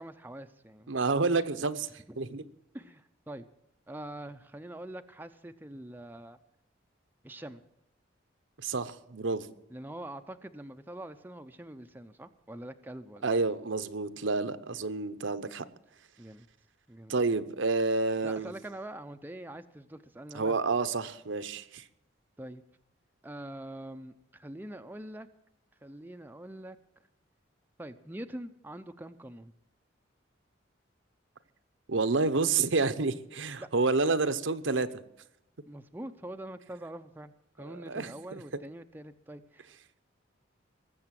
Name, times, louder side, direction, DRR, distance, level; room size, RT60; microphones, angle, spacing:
voice 1, 0.0-1.1 2.1-2.2 2.7-3.4 3.9-6.4 7.2-7.6 9.7-13.3 14.7-14.8 16.2-16.5 16.9-17.2 18.2-20.6 22.4-22.6 23.2-25.3 25.8-26.8 27.8-29.5 33.6-33.7 35.7-39.7, right 1 dB, 10° right, 7 dB, 0.6 m, -44 dB
voice 2, 0.9-2.4 8.6-9.5 13.2-15.7 17.1-18.5 20.3-21.9 31.9-35.0 37.6-38.4, right 3 dB, 70° right, 12 dB, 0.9 m, -29 dB
20.0 x 7.8 x 7.5 m, 0.81 s
head